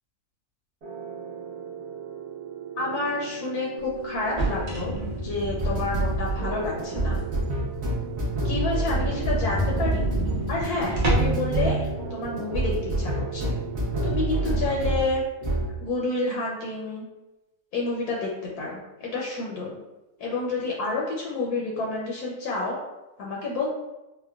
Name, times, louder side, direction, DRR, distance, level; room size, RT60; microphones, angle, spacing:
sound 1, 0.8-15.1 15.4-15.7, right 2 dB, 50° right, 0.9 m, -29 dB
voice 1, 2.8-5.0 5.2-7.2 8.4-10.1 10.5-13.5 14.0-15.2 15.8-17.1 17.7-19.8 20.2-22.8 23.2-23.7, left 3 dB, 75° left, -3 dB, 1.1 m, -29 dB
sound 2, 4.2-6.8 7.2-7.3 7.7-7.8 8.1-8.2 8.4-8.5 8.9-11.5, right 1 dB, 70° right, 0.3 m, -28 dB
4.3 x 2.1 x 2.3 m, 1.0 s
omnidirectional pair, 1.8 m